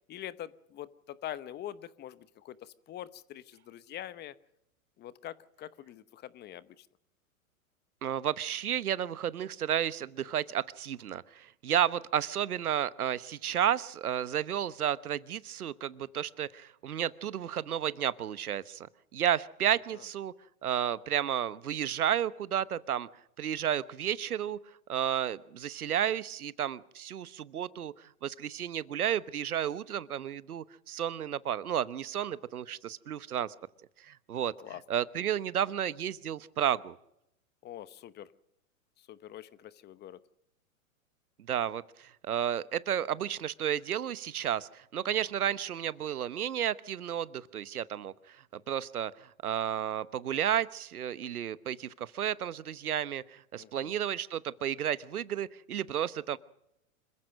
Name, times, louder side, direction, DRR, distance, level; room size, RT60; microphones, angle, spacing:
voice 1, 0.1-4.3 5.0-6.9 19.9-20.0 34.6-34.8 37.6-38.3 39.1-40.2 53.6-54.0, left 12 dB, 25° left, 17 dB, 0.9 m, -44 dB
voice 2, 8.0-18.9 19.1-20.3 20.6-23.1 23.4-24.6 24.9-27.9 28.2-33.5 34.0-34.5 34.9-37.0 41.5-48.4 48.7-56.4, right 10 dB, 85° right, 17 dB, 1.1 m, -32 dB
26.5 x 15.0 x 6.5 m, 0.81 s
hypercardioid pair, 115°, 43 cm